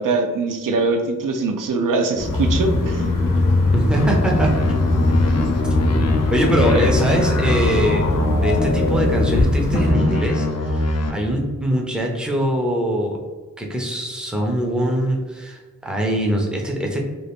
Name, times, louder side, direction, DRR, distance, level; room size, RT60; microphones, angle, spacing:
voice 1, 0.0-3.1 6.7-6.9, right 3 dB, 80° right, 5 dB, 0.5 m, -22 dB
sound 1, 2.2-9.9, left 2 dB, 85° left, 0.7 m, -21 dB
voice 2, 3.7-4.5 6.3-8.0 8.4-13.2 13.6-17.0, equal, 5° right, 0 dB, 0.5 m, -22 dB
sound 2, 3.9-9.4 9.7-11.1, left 2 dB, 55° left, 0.5 m, -22 dB
2.5 x 2.4 x 3.4 m, 1.3 s
wide cardioid pair, 85°, 32 cm